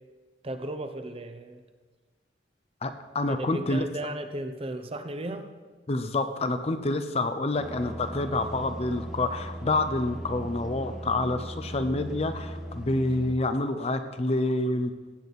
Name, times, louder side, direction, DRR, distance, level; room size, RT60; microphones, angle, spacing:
voice 1, 0.4-1.6 3.3-5.5, right 1 dB, 30° right, 8 dB, 0.8 m, -35 dB
voice 2, 2.8-3.9 5.9-14.9, left 2 dB, 35° left, 9 dB, 0.6 m, -28 dB
sound 1, 7.5-13.3, right 1 dB, 5° right, 1.2 m, -38 dB
16.5 x 8.7 x 4.1 m, 1.4 s
head